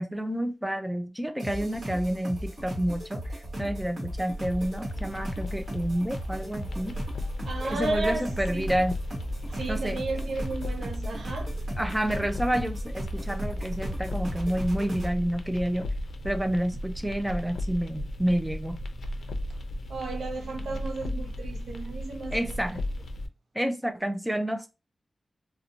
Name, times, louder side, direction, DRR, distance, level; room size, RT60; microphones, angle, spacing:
voice 1, 0.0-6.9 7.6-9.0 9.7-10.0 11.8-15.9 16.2-18.8 22.3-22.8 23.5-24.7, right 1 dB, 5° right, 0.3 m, -29 dB
sound 1, 1.4-15.1, equal, 45° right, 1.1 m, -37 dB
sound 2, 4.0-23.3, equal, 70° left, 0.4 m, -35 dB
voice 2, 7.4-8.7 9.5-11.5 19.9-22.5, right 2 dB, 90° right, 0.5 m, -33 dB
2.5 x 2.1 x 2.7 m
wide cardioid pair, 180°, 0 cm